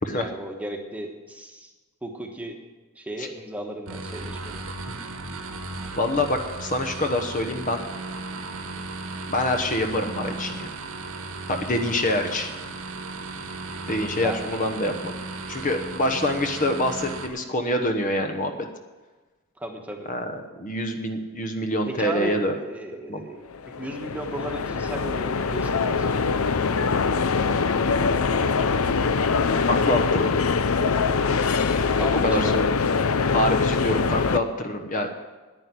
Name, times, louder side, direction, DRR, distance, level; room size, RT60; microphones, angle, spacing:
voice 1, 0.1-1.7 2.0-2.6 2.9-4.6 14.1-14.4 19.6-20.1 21.9-26.1 31.9-32.6, right 1 dB, 5° right, 2 dB, 1.3 m, -35 dB
sound 1, 3.9-17.3, right 3 dB, 75° right, 1.5 m, -35 dB
voice 2, 6.0-7.8 9.3-10.7 11.5-12.5 13.9-15.2 15.5-18.7 20.1-22.6 23.1-23.2 29.7-30.3 32.2-32.8 33.3-35.1, left 1 dB, 35° left, 5 dB, 1.0 m, -26 dB
sound 2, 23.5-34.4, left 5 dB, 75° left, 0.6 m, -23 dB
10.5 x 9.6 x 9.6 m, 1.2 s
head